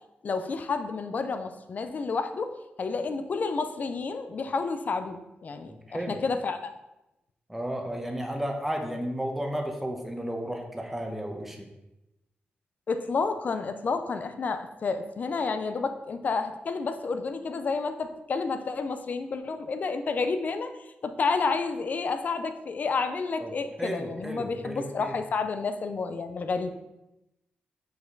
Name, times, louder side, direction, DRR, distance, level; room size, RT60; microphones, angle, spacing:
voice 1, 0.2-2.5 2.8-6.7 12.9-26.7, left 4 dB, 45° left, 9 dB, 0.6 m, -30 dB
voice 2, 5.7-6.2 7.5-11.7 23.4-23.5 23.8-25.2, equal, 5° right, 2 dB, 1.0 m, -33 dB
6.5 x 5.6 x 3.9 m, 0.93 s
wide cardioid pair, 140°, 4 cm